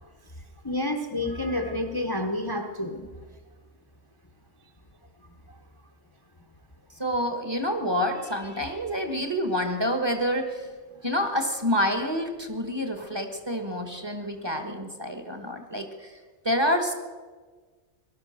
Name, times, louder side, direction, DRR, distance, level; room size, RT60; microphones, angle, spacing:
voice 1, 0.6-3.0, left 1 dB, 20° left, 3 dB, 1.1 m, -29 dB
voice 2, 7.0-10.7 11.0-16.2 16.4-16.9, equal, 20° right, 6 dB, 1.5 m, -28 dB
18.0 x 12.0 x 6.7 m, 1.4 s
omnidirectional pair, 1.2 m